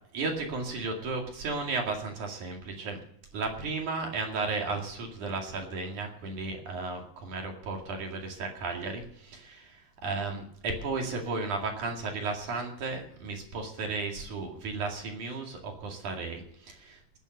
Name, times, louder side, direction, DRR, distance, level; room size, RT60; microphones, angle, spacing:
voice 1, 0.1-3.0 3.3-17.2, right 3 dB, 55° right, 2 dB, 3.6 m, -34 dB
19.0 x 9.3 x 6.6 m, 0.67 s
omnidirectional pair, 4.5 m